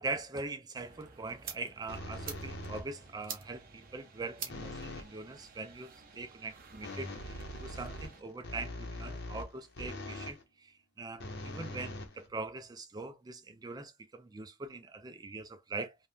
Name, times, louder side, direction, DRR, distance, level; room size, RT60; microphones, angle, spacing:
voice 1, 0.0-16.0, right 3 dB, 20° right, 0.3 m, -42 dB
sound 1, 0.7-8.2, right 6 dB, 40° right, 0.7 m, -49 dB
sound 2, 1.9-3.1 4.5-5.2 6.8-10.4 11.2-12.7, left 1 dB, 50° left, 0.8 m, -42 dB
3.4 x 2.2 x 2.5 m
head